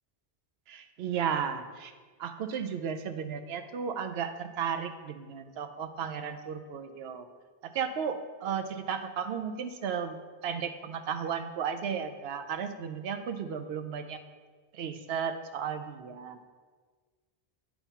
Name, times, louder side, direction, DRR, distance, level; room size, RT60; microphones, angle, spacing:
voice 1, 0.7-1.9 2.2-7.3 7.6-14.2 14.7-16.4, right 7 dB, 75° right, 8 dB, 0.8 m, -34 dB
8.8 x 3.0 x 5.5 m, 1.5 s
omnidirectional pair, 1.1 m